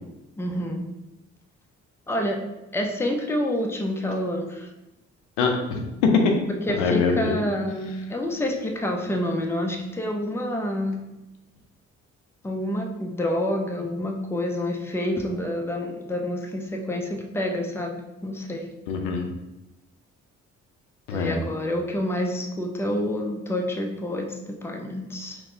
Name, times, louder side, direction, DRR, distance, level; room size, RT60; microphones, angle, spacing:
voice 1, 0.4-0.8 2.1-2.4 2.7-4.7 6.5-11.0 12.4-17.9 18.2-18.7 21.1-25.4, left 1 dB, 5° left, 2 dB, 0.5 m, -28 dB
voice 2, 5.4-6.3 6.8-7.4 18.9-19.3 21.1-21.4, left 4 dB, 90° left, 2 dB, 0.5 m, -23 dB
4.0 x 2.2 x 2.6 m, 0.96 s
hypercardioid pair, 45°, 36 cm